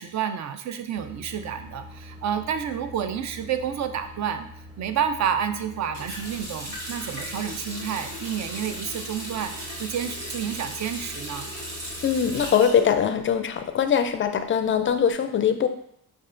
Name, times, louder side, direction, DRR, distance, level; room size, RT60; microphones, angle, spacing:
voice 1, 0.0-4.5 4.8-11.5, right 8 dB, 45° right, 9 dB, 0.4 m, -30 dB
sound 1, 0.9-12.5, left 1 dB, 10° right, 0.9 m, -45 dB
Water tap faucet, 5.9-13.7 14.0-15.0, equal, 80° right, 1.3 m, -37 dB
voice 2, 12.0-15.7, left 8 dB, 30° left, 9 dB, 0.4 m, -22 dB
5.4 x 2.4 x 2.4 m, 0.69 s
supercardioid pair, 60°, 41 cm